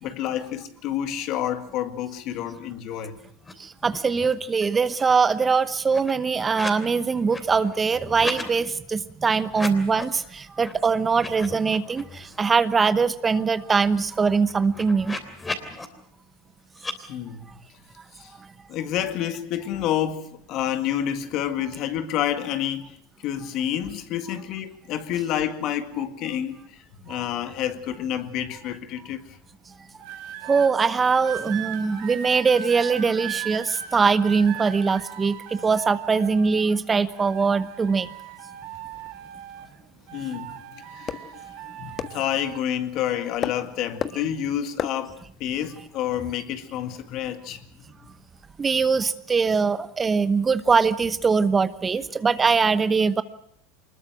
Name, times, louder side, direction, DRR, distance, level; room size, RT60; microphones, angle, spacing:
voice 1, 0.0-3.2 17.1-17.5 18.1-18.3 18.7-29.4 40.1-41.2 41.8-47.6, left 10 dB, 55° left, 1.9 m, -29 dB
sound 1, 3.4-3.5 3.8-4.5 4.8-6.9 7.2-8.5 9.4-10.2 10.6-10.7 11.1-12.4 12.8-12.9 13.2-15.9 16.8-17.0, left 2 dB, 15° left, 3.2 m, -37 dB
voice 2, 3.8-15.2 30.5-38.1 48.6-53.2, right 5 dB, 25° right, 1.0 m, -22 dB
sound 2, 30.0-30.7 31.2-36.8 37.1-39.8 40.1-42.6 43.4-43.7, right 10 dB, 65° right, 2.5 m, -38 dB
sound 3, 38.5-47.4, left 8 dB, 40° left, 1.4 m, -38 dB
24.5 x 21.0 x 6.3 m
hypercardioid pair, 90°, 0 cm